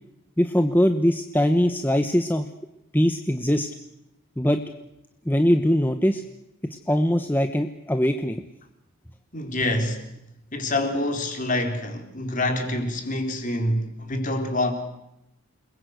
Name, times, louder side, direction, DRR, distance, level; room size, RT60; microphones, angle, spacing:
voice 1, 0.4-2.5 2.9-3.7 4.4-4.6 5.3-6.2 6.9-8.4, equal, 10° left, 1.1 m, -21 dB
voice 2, 9.3-10.0 10.5-14.7, left 1 dB, 35° left, 3.9 m, -26 dB
29.0 x 21.5 x 8.1 m
head